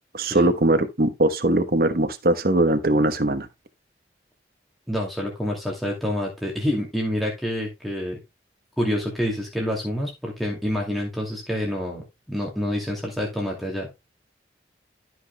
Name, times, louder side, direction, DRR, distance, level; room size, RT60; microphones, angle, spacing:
voice 1, 0.1-3.5, right 1 dB, 55° right, 1.1 m, -21 dB
voice 2, 4.9-8.2 8.8-13.9, equal, ahead, 2.5 m, -27 dB
13.0 x 6.0 x 2.2 m
head